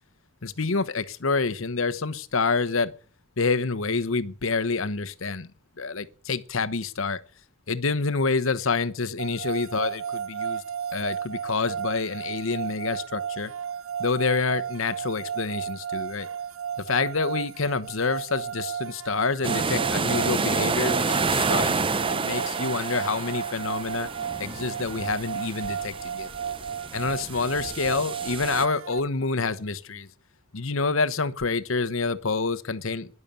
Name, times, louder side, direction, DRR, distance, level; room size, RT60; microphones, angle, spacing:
voice 1, 0.4-2.9 3.4-5.5 5.8-7.2 7.7-10.6 10.9-13.5 14.0-16.3 16.8-24.1 24.4-26.3 26.9-30.1 30.5-33.1, left 4 dB, 70° left, 1.0 m, -27 dB
sound 1, 9.2-29.0, right 8 dB, 75° right, 0.9 m, -34 dB
sound 2, 19.4-28.7, right 4 dB, 25° right, 0.6 m, -29 dB
12.5 x 11.0 x 8.8 m
head